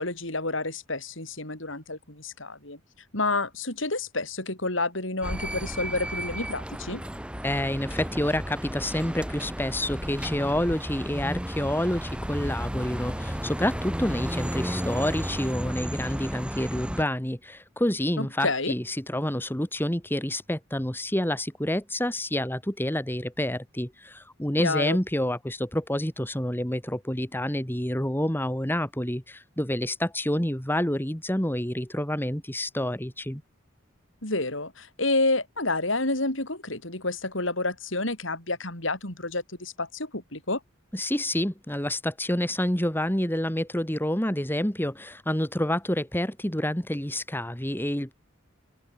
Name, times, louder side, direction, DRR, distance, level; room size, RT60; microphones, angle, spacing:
voice 1, 0.0-2.8 3.1-7.0 18.2-18.7 24.6-25.0 34.2-40.6, left 2 dB, 65° left, 6.8 m, -29 dB
sound 1, 5.2-17.0, equal, 5° right, 5.1 m, -33 dB
voice 2, 7.4-33.4 40.9-48.1, left 1 dB, 10° left, 2.4 m, -28 dB
open air
head